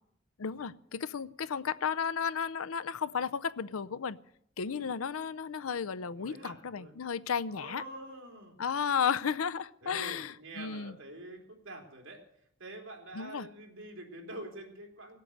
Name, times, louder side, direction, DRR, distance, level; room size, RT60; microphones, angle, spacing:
voice 1, 0.4-4.2 4.6-7.8 8.6-11.0 13.1-13.5, left 6 dB, 85° left, 15 dB, 0.6 m, -33 dB
voice 2, 6.0-6.9 7.5-8.6 9.8-12.3 12.6-15.2, right 1 dB, 65° right, 1 dB, 3.3 m, -46 dB
18.5 x 8.4 x 7.8 m, 0.72 s
head